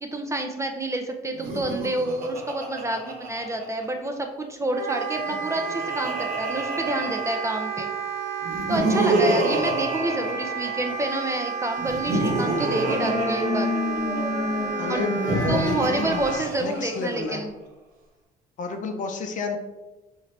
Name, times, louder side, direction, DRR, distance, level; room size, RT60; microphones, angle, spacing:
voice 1, 0.0-7.9 8.7-13.7 14.9-15.0 15.5-17.5, right 1 dB, 15° right, 4 dB, 0.4 m, -28 dB
Laughter, 1.3-4.1 5.2-7.8 8.4-11.1 11.8-14.2 15.1-17.2, right 2 dB, 60° right, 0.9 m, -29 dB
Wind instrument woodwind instrument, 4.7-16.4, right 5 dB, 75° right, 0.5 m, -32 dB
voice 2, 9.0-9.5 14.8-17.4 18.6-19.6, left 4 dB, 50° left, 5 dB, 0.6 m, -31 dB
sound 1, 12.2-17.4, left 2 dB, 15° left, 1.0 m, -29 dB
3.9 x 2.6 x 3.2 m, 1.1 s
cardioid pair, 110°, 17 cm